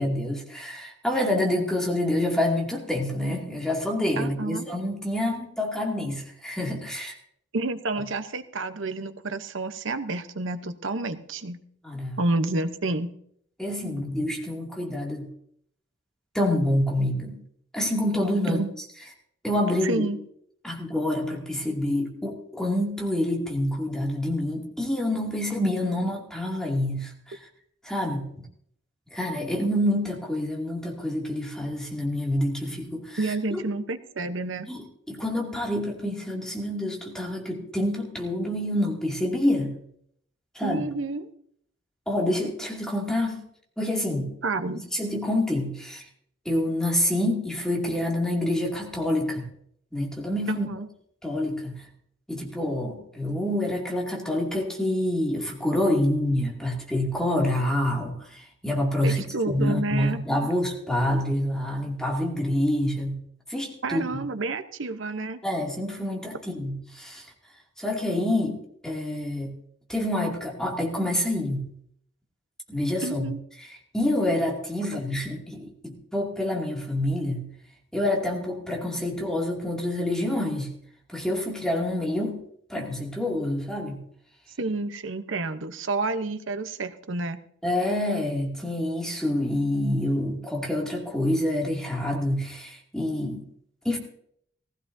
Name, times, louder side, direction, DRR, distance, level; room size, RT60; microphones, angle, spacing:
voice 1, 0.0-7.2 11.8-12.2 13.6-15.3 16.3-17.4 17.7-18.6 19.4-20.1 20.6-27.4 27.8-28.3 29.1-33.2 33.5-33.6 34.7-39.8 40.5-40.9 42.1-43.4 43.8-44.3 44.9-46.0 46.5-49.5 49.9-50.7 51.2-51.9 52.3-63.2 63.5-64.2 65.4-67.2 67.8-69.5 69.9-71.7 72.7-73.3 73.6-77.5 77.9-80.7 81.1-82.4 82.7-84.0 87.6-93.4 93.8-94.0, left 1 dB, 5° left, -2 dB, 2.4 m, -27 dB
voice 2, 4.2-4.7 7.5-11.6 12.2-13.1 18.5-18.7 19.8-20.2 33.2-34.7 40.6-41.3 44.4-44.8 50.5-50.9 59.0-60.2 63.8-65.4 73.0-73.4 84.6-87.4, right 2 dB, 80° right, 10 dB, 0.9 m, -29 dB
18.0 x 16.0 x 2.7 m, 0.67 s
head